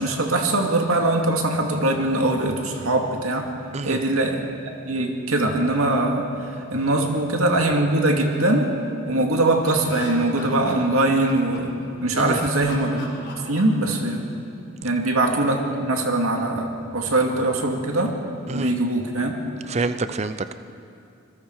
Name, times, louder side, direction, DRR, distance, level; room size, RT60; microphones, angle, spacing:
voice 1, 0.0-3.5 3.8-4.4 4.9-8.7 9.1-11.7 12.0-13.0 13.5-14.3 14.8-18.2 18.5-19.3, right 2 dB, 80° right, 2 dB, 2.5 m, -22 dB
Laughter, 9.3-11.8 12.3-14.3, left 3 dB, 50° left, 3.9 m, -39 dB
voice 2, 19.7-20.5, right 3 dB, 30° right, 11 dB, 0.6 m, -26 dB
27.0 x 22.0 x 4.9 m, 2.5 s
head